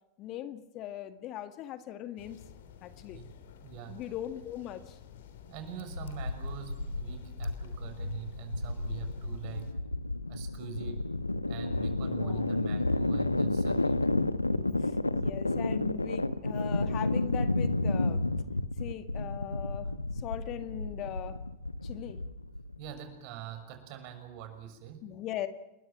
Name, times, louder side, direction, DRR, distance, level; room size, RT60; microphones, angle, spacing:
voice 1, 0.2-2.4 2.8-3.2 3.9-5.0 12.1-12.5 15.1-18.2 18.8-19.9 20.2-21.4 21.8-22.2 25.0-25.5, left 11 dB, 40° left, 10 dB, 1.9 m, -40 dB
sound 1, 2.2-9.7, left 8 dB, 60° left, 3.2 m, -52 dB
voice 2, 3.6-4.1 5.5-9.8 10.3-11.1 11.5-14.1 15.1-15.3 15.8-15.9 22.8-25.1, right 10 dB, 50° right, 8 dB, 6.2 m, -44 dB
sound 2, 5.9-22.9, left 2 dB, 85° left, 1.0 m, -31 dB
30.0 x 22.0 x 6.2 m, 0.92 s
figure-of-eight pair, 85°, 0 cm